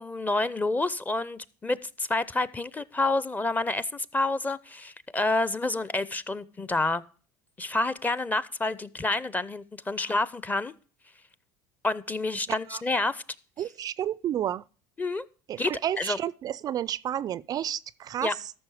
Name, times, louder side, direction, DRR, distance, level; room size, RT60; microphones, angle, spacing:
voice 1, 0.0-7.0 7.6-10.7 11.8-13.2 15.0-15.2 15.6-16.2 18.2-18.3, left 2 dB, 15° left, 0.7 m, -28 dB
voice 2, 13.6-14.6 15.5-18.5, right 11 dB, 40° right, 0.4 m, -31 dB
13.0 x 6.2 x 4.8 m
supercardioid pair, 90°, 10 cm